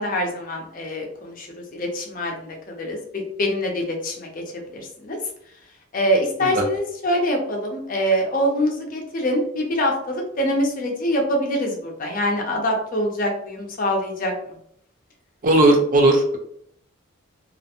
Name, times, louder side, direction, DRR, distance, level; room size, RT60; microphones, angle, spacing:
voice 1, 0.0-1.5 1.7-5.2 5.9-14.3, equal, 40° left, 1 dB, 0.6 m, -24 dB
voice 2, 15.4-16.4, right 2 dB, 40° right, 3 dB, 0.4 m, -16 dB
2.4 x 2.1 x 2.7 m, 0.67 s
head